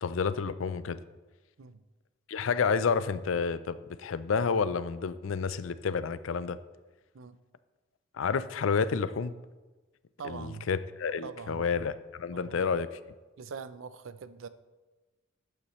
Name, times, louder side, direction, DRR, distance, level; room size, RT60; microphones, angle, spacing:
voice 1, 0.0-1.0 2.3-6.6 8.1-9.3 10.2-12.9, left 5 dB, 80° left, 15 dB, 0.5 m, -30 dB
voice 2, 10.2-10.7 11.2-11.8 12.3-12.7 13.4-14.5, right 5 dB, 80° right, 13 dB, 0.5 m, -43 dB
12.0 x 8.6 x 3.1 m, 1.2 s
head